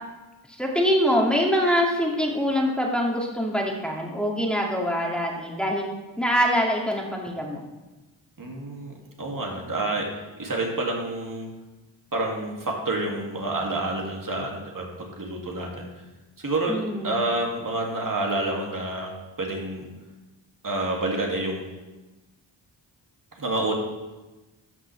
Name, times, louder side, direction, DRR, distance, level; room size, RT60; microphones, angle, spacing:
voice 1, 0.6-5.9 6.2-7.6 16.7-17.2, equal, ahead, -1 dB, 2.2 m, -24 dB
voice 2, 8.4-10.1 10.4-11.5 12.1-15.9 16.4-19.1 19.4-19.8 20.6-21.7 23.4-23.7, right 2 dB, 45° right, -1 dB, 2.3 m, -28 dB
13.0 x 5.8 x 3.3 m, 1.1 s
cardioid pair, 50°, 45 cm